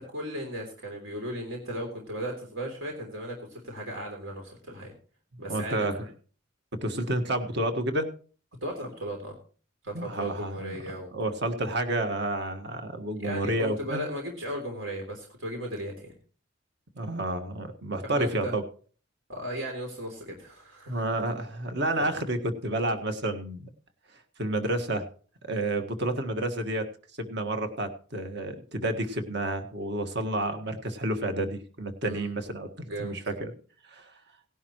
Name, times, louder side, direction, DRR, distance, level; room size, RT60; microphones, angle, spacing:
voice 1, 0.1-4.9 5.4-6.1 8.6-9.4 9.8-11.4 13.2-16.1 18.1-18.6 19.3-21.1 22.0-22.1 32.0-32.3 32.9-33.2, right 1 dB, 85° right, 1 dB, 3.3 m, -36 dB
voice 2, 5.5-5.9 6.7-8.1 9.9-10.8 11.1-14.0 17.0-18.6 20.9-23.7 24.4-25.1 25.5-26.9 27.2-33.5 33.9-34.1, right 1 dB, 60° right, 7 dB, 1.6 m, -30 dB
18.0 x 11.0 x 3.1 m, 0.40 s
head